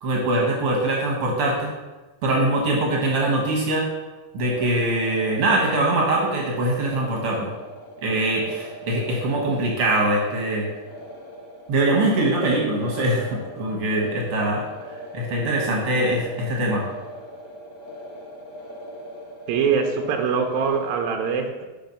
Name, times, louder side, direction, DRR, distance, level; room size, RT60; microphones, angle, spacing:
voice 1, 0.0-1.7 2.2-3.9 4.3-7.5 8.0-10.7 11.7-14.6 15.1-16.8, right 1 dB, 60° right, -2 dB, 1.7 m, -22 dB
sound 1, 4.4-20.9, equal, 75° left, 2.7 m, -40 dB
voice 2, 19.5-21.6, right 6 dB, 80° right, 3 dB, 1.8 m, -23 dB
5.5 x 5.1 x 5.4 m, 1.2 s
omnidirectional pair, 3.5 m